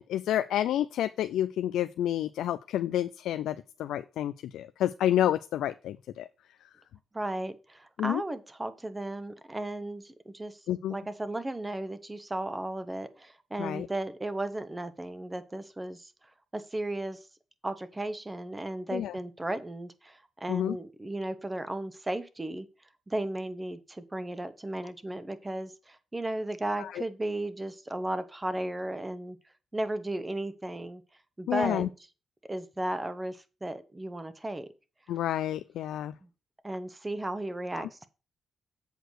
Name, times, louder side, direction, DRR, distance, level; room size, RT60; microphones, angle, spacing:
voice 1, 0.0-6.3 8.0-8.2 10.7-10.9 13.6-13.9 18.9-19.1 20.5-20.8 26.8-26.9 31.5-31.9 35.1-36.1, left 11 dB, 90° left, 12 dB, 0.3 m, -29 dB
voice 2, 7.1-10.6 10.9-16.1 16.5-17.2 17.6-22.7 23.1-29.4 29.7-31.0 31.4-31.9 32.5-34.7 36.2-36.3 36.6-38.1, right 1 dB, 20° right, 12 dB, 1.1 m, -35 dB
8.0 x 4.6 x 6.5 m, 0.32 s
cardioid pair, 75°, 0 cm